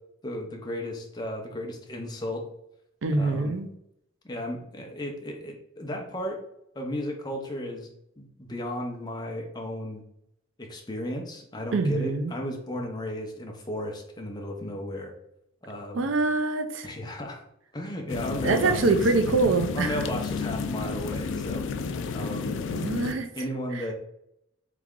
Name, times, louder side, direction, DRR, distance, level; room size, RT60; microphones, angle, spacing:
voice 1, 0.2-2.4 3.1-3.6 4.2-6.4 6.7-7.9 8.2-10.0 10.6-15.1 15.6-16.1 16.8-17.4 17.7-18.8 19.7-22.5 23.4-23.9, left 1 dB, 20° left, 2 dB, 0.7 m, -34 dB
voice 2, 3.0-3.7 11.7-12.3 15.9-16.9 18.4-20.0 22.7-23.3, right 3 dB, 80° right, 9 dB, 0.5 m, -24 dB
sound 1, 18.1-23.1, left 5 dB, 70° left, 0.4 m, -31 dB
3.6 x 3.3 x 3.6 m, 0.78 s
head